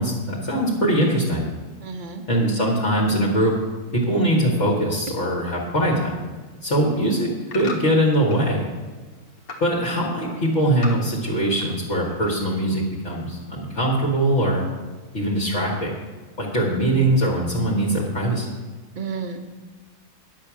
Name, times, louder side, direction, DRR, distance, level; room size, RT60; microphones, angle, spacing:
voice 1, 0.0-1.5 2.3-3.5 3.9-6.2 6.6-7.3 7.5-8.7 9.6-14.6 15.1-15.9 16.4-18.5, right 1 dB, 50° left, -4 dB, 1.8 m, -22 dB
voice 2, 1.8-2.2 19.0-19.4, right 5 dB, 40° right, 6 dB, 0.9 m, -31 dB
sound 1, 6.8-8.6 8.9-9.7 10.0-11.8 12.0-12.6 13.1-13.2, left 3 dB, 80° left, 1.8 m, -38 dB
9.9 x 7.4 x 6.0 m, 1.3 s
omnidirectional pair, 1.5 m